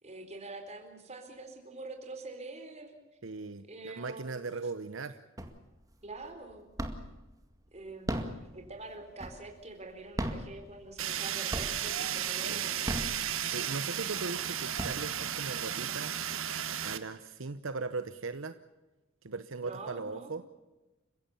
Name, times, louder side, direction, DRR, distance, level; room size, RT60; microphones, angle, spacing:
voice 1, 0.0-2.9 3.7-4.4 6.0-6.6 7.7-13.1 19.6-20.3, right 2 dB, 35° right, 6 dB, 4.1 m, -45 dB
voice 2, 3.2-5.2 12.5-12.7 13.5-16.1 16.8-18.6 19.2-20.4, right 3 dB, 70° right, 11 dB, 0.9 m, -39 dB
sound 1, 5.4-5.9 6.2-7.2 7.9-9.6 10.1-11.2 11.5-12.1 12.7-13.7 14.2-14.3 14.6-15.5, equal, 20° right, 2.1 m, -36 dB
Fire, 11.0-17.0, right 10 dB, 85° right, 1.4 m, -34 dB
29.5 x 16.0 x 7.0 m, 1.1 s
head